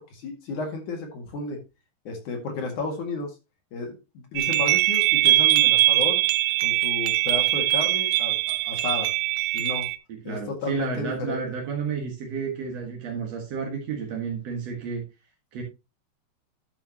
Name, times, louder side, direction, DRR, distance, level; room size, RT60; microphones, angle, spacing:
voice 1, 0.1-1.6 2.0-3.3 3.7-4.0 4.3-6.2 6.6-9.1 9.5-9.9 10.2-11.4, left 3 dB, 55° left, 2 dB, 2.5 m, -32 dB
sound 1, 4.4-10.0, right 17 dB, 80° right, 2.6 m, -22 dB
voice 2, 10.2-15.0 15.5-15.6, right 6 dB, 55° right, 0 dB, 1.8 m, -31 dB
12.0 x 7.0 x 2.9 m, 0.26 s
omnidirectional pair, 5.5 m